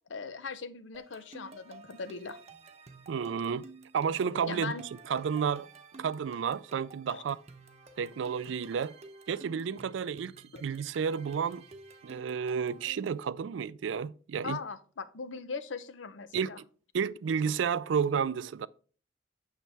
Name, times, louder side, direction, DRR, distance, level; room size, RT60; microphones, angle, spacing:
voice 1, 0.1-2.4 4.5-4.8 7.1-7.2 10.5-10.6 14.4-16.6, left 5 dB, 80° left, 0.7 m, -39 dB
sound 1, 0.9-13.2, right 3 dB, 35° right, 0.8 m, -52 dB
voice 2, 3.1-3.6 3.9-4.7 5.1-5.7 6.0-7.4 8.0-9.0 9.3-10.3 10.6-11.6 12.0-14.6 16.3-16.5 16.9-18.7, right 6 dB, 80° right, 0.4 m, -31 dB
9.0 x 6.6 x 3.4 m
head